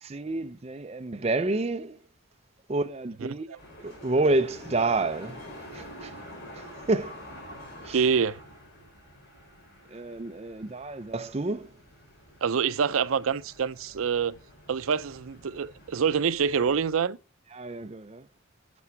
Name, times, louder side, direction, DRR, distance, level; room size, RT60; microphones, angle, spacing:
voice 1, 0.0-2.0 2.7-3.5 3.8-5.4 5.7-6.1 6.5-7.3 7.8-8.0 9.9-11.7 17.5-18.2, right 2 dB, 30° right, 0.5 m, -29 dB
voice 2, 3.2-3.6 7.9-8.4 12.4-14.3 14.7-17.2, right 6 dB, 85° right, 0.5 m, -26 dB
sound 1, 3.6-16.9, equal, 55° left, 4.1 m, -47 dB
8.4 x 6.1 x 4.6 m
head